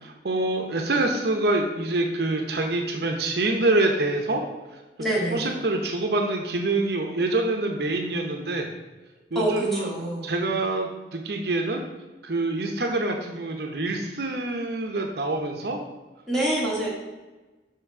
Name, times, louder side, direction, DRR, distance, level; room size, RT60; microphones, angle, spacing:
voice 1, 0.0-4.4 4.7-4.8 5.3-8.7 9.3-9.9 10.2-11.8 12.2-15.8, right 2 dB, 60° right, 3 dB, 0.7 m, -26 dB
voice 2, 5.0-5.5 9.4-10.2 16.3-16.9, right 1 dB, ahead, -6 dB, 2.0 m, -26 dB
5.8 x 5.8 x 4.8 m, 1.2 s
head